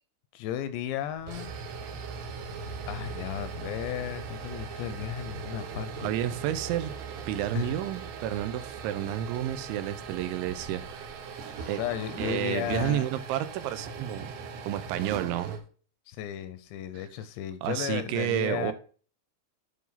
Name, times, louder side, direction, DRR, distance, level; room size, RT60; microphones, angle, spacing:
voice 1, 0.3-1.5 2.9-6.1 7.5-7.8 11.6-13.0 16.1-18.7, left 11 dB, 80° left, 12 dB, 2.6 m, -34 dB
sound 1, 1.1-15.6, right 5 dB, 70° right, 2.9 m, -39 dB
voice 2, 6.0-6.9 7.3-11.1 11.7-11.8 12.2-14.3 14.6-15.6 17.6-18.7, right 12 dB, 85° right, 12 dB, 3.1 m, -30 dB
9.3 x 4.8 x 4.0 m, 0.41 s
omnidirectional pair, 5.3 m